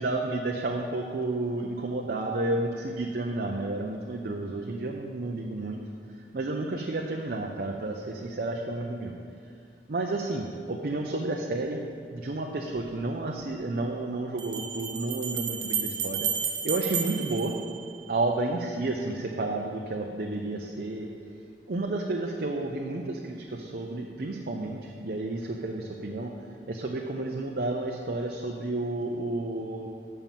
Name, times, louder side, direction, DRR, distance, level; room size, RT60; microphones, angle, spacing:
voice 1, 0.0-5.8 6.3-9.1 9.9-11.8 12.1-16.3 16.6-17.5 18.1-21.1 21.7-26.3 26.7-29.9, right 2 dB, 55° right, 0 dB, 0.6 m, -31 dB
Bell, 12.8-12.9 14.4-18.3, right 7 dB, 90° right, 0.9 m, -32 dB
7.3 x 5.5 x 7.4 m, 2.2 s
head